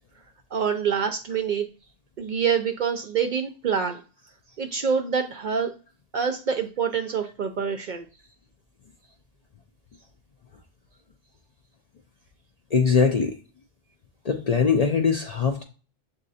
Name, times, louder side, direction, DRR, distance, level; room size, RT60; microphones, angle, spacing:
voice 1, 0.5-1.7 2.2-4.0 4.6-5.7 6.1-8.1, right 6 dB, 60° right, 6 dB, 0.5 m, -26 dB
voice 2, 12.7-13.4 14.2-15.6, left 5 dB, 50° left, 4 dB, 0.5 m, -21 dB
7.4 x 2.7 x 2.7 m, 0.35 s
omnidirectional pair, 1.1 m